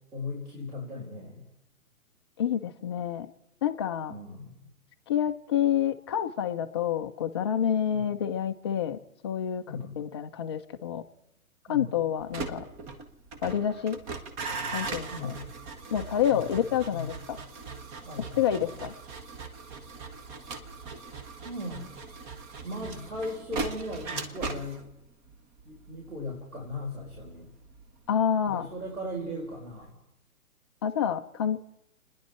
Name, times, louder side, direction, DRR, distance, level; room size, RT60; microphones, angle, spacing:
voice 1, 0.1-1.4 4.1-4.5 7.9-8.2 9.7-10.0 11.7-12.0 15.1-15.4 16.3-17.1 18.0-18.7 21.4-21.9 22.6-24.8 25.6-27.5 28.4-30.0, left 1 dB, 80° right, -4 dB, 4.8 m, -38 dB
voice 2, 2.4-3.3 3.6-4.1 5.1-9.0 9.2-11.0 11.7-12.6 13.4-14.0 14.7-15.3 15.9-17.4 18.4-18.9 28.1-28.7 30.8-31.6, left 9 dB, 20° left, 7 dB, 0.5 m, -28 dB
sound 1, 12.2-29.2 29.5-29.9, right 4 dB, 20° right, 1.0 m, -40 dB
29.5 x 10.5 x 4.4 m, 0.88 s
figure-of-eight pair, 125°, 44 cm